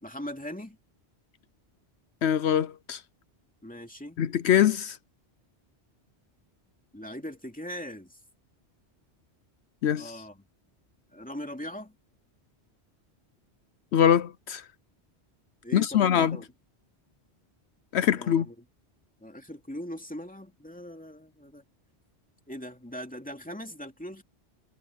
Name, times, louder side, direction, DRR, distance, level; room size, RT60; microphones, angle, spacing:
voice 1, 0.0-0.8 3.6-4.2 6.9-8.2 9.9-10.5 11.1-11.9 15.6-16.5 18.0-18.6 19.2-21.6 22.5-24.2, equal, 5° left, 2.6 m, -40 dB
voice 2, 2.2-3.0 4.2-5.0 9.8-10.1 13.9-14.6 15.7-16.4 17.9-18.5, left 9 dB, 75° left, 0.9 m, -23 dB
omnidirectional pair, 1.1 m